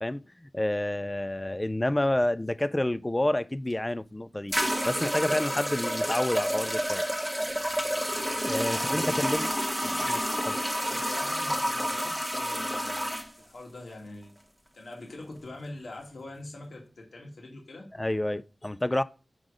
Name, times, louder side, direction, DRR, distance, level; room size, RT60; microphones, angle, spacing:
voice 1, 0.0-4.5 4.8-7.0 8.4-9.5 9.8-10.6 18.0-19.0, left 1 dB, 20° left, 0.4 m, -29 dB
sound 1, 3.7-3.8 4.5-13.3, equal, 5° right, 1.1 m, -29 dB
voice 2, 8.7-9.4 10.9-13.1 13.4-14.3 14.7-17.9, left 2 dB, 70° left, 2.1 m, -43 dB
6.1 x 3.9 x 5.0 m
wide cardioid pair, 85°, 0 cm